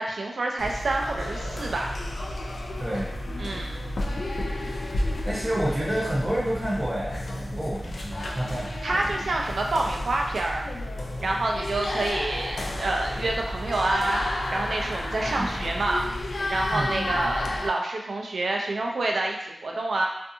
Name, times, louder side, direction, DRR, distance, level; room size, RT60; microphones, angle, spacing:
voice 1, 0.0-1.9 3.4-3.8 8.8-10.7 11.2-14.2 14.5-16.1 16.5-20.1, right 2 dB, 85° right, 1 dB, 0.4 m, -27 dB
sound 1, 0.6-17.7, left 1 dB, 75° left, 0.3 m, -31 dB
voice 2, 2.8-3.2 4.7-4.8 5.2-9.0 15.3-15.6 16.7-17.1, right 1 dB, 20° right, -5 dB, 0.7 m, -29 dB
2.5 x 2.3 x 2.7 m, 0.83 s
wide cardioid pair, 105°, 0 cm